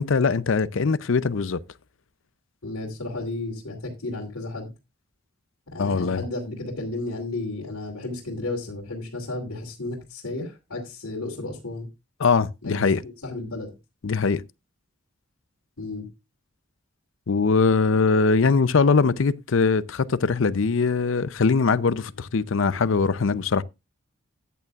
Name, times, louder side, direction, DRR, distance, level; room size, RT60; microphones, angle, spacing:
voice 1, 0.0-1.6 5.8-6.2 12.2-13.0 14.0-14.4 17.3-23.6, left 4 dB, 65° left, 0.5 m, -21 dB
voice 2, 2.6-4.7 5.7-11.9 12.6-12.8 13.2-13.7 15.8-16.0, left 2 dB, 80° left, 2.8 m, -33 dB
14.0 x 9.3 x 2.4 m
head